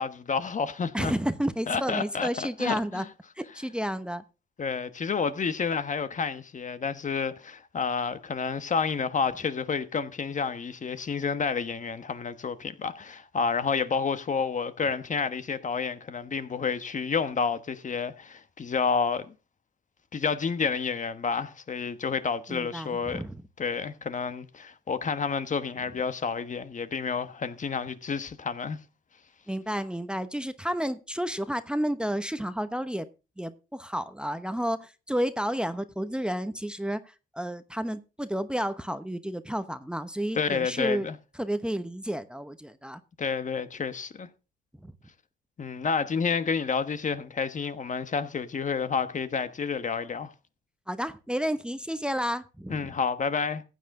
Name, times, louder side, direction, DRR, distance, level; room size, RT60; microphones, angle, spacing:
voice 1, 0.0-1.1 1.7-3.1 4.6-19.3 20.1-23.2 23.6-28.8 40.3-41.2 43.2-44.3 45.6-50.3 52.7-53.6, left 5 dB, 40° left, 1.2 m, -30 dB
voice 2, 0.9-3.0 3.4-4.2 22.5-23.4 29.5-33.1 33.4-37.0 37.3-41.1 41.4-43.0 44.8-44.9 50.9-52.9, equal, 5° right, 0.9 m, -31 dB
15.5 x 9.2 x 3.8 m
cardioid pair, 90°, 20 cm